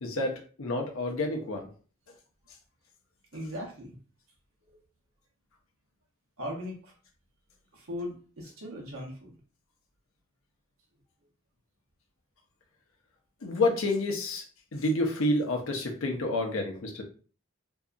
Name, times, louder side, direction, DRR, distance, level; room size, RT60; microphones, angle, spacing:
voice 1, 0.0-1.7 13.4-14.4 14.7-17.0, left 2 dB, 75° left, 1 dB, 0.7 m, -29 dB
voice 2, 3.3-4.0 4.7-4.8 6.4-6.9 7.7-9.3, left 1 dB, 80° right, -1 dB, 0.9 m, -38 dB
2.7 x 2.3 x 2.4 m, 0.39 s
head